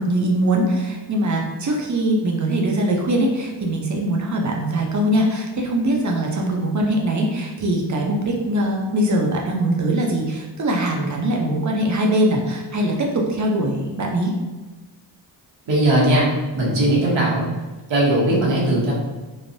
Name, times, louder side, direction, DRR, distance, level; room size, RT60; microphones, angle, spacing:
voice 1, 0.0-14.3, right 1 dB, 40° right, 0 dB, 0.6 m, -22 dB
voice 2, 15.7-16.3 16.5-17.5 17.9-18.9, right 1 dB, 75° right, -5 dB, 1.1 m, -18 dB
3.1 x 2.1 x 2.6 m, 1.2 s
cardioid pair, 75°, 45 cm